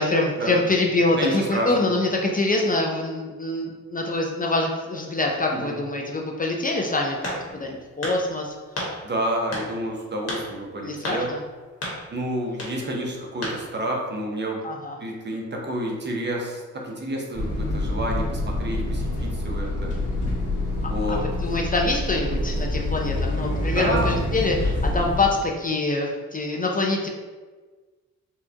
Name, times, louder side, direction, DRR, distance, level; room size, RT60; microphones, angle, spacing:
voice 1, 0.0-8.5 10.8-11.4 14.6-14.9 20.8-27.1, left 2 dB, 30° left, 0 dB, 0.4 m, -25 dB
voice 2, 1.2-1.9 5.5-5.7 9.0-11.3 12.1-14.7 15.0-20.1 20.9-21.2 23.7-24.2, right 1 dB, 35° right, 0 dB, 0.7 m, -29 dB
sound 1, 7.2-7.7 8.0-8.2 8.8-8.9 9.5-9.7 10.3-10.4 11.0-11.2 11.8-12.0 12.6-12.7 13.4-13.6, left 1 dB, 50° left, 1.3 m, -30 dB
sound 2, 17.3-25.4, left 1 dB, 75° left, 1.4 m, -26 dB
4.4 x 2.3 x 2.7 m, 1.3 s
cardioid pair, 80°, 31 cm